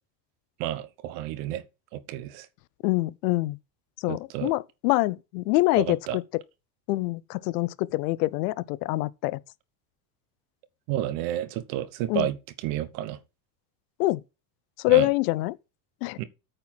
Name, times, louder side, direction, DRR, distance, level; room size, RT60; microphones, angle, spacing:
voice 1, 0.6-1.6 1.9-2.5 4.1-4.5 5.8-6.2 10.9-13.2 14.9-15.1 16.2-16.3, right 13 dB, 75° right, 1.3 m, -31 dB
voice 2, 2.8-3.6 4.0-6.4 6.9-9.4 12.1-12.3 14.0-14.2 14.8-15.6 16.0-16.2, left 20 dB, 90° left, 0.7 m, -25 dB
9.0 x 4.4 x 5.8 m
cardioid pair, 135°, 46 cm